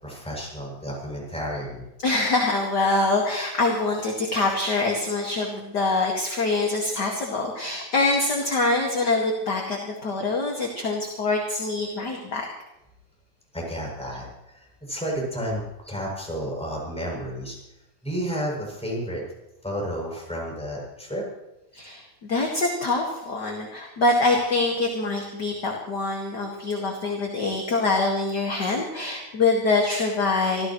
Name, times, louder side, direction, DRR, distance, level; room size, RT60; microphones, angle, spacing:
voice 1, 0.0-1.8 13.5-17.6 18.0-19.2 19.6-21.2, equal, ahead, -3 dB, 7.1 m, -31 dB
voice 2, 2.0-12.5 21.7-30.7, left 3 dB, 35° left, -1 dB, 2.2 m, -24 dB
26.0 x 15.5 x 3.2 m, 0.91 s
omnidirectional pair, 3.8 m